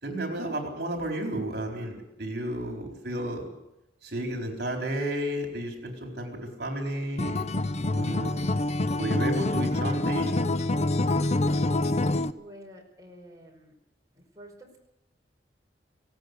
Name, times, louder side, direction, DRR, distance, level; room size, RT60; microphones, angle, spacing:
voice 1, 0.0-3.5 4.0-7.4 7.9-8.5 9.0-10.5, right 1 dB, 60° right, 3 dB, 4.2 m, -32 dB
Acoustic guitar, 7.2-12.3, left 2 dB, 35° left, 0.6 m, -26 dB
voice 2, 11.2-11.6 12.3-13.7 14.1-14.8, equal, 20° right, 0 dB, 5.2 m, -50 dB
18.5 x 17.0 x 8.2 m, 0.89 s
head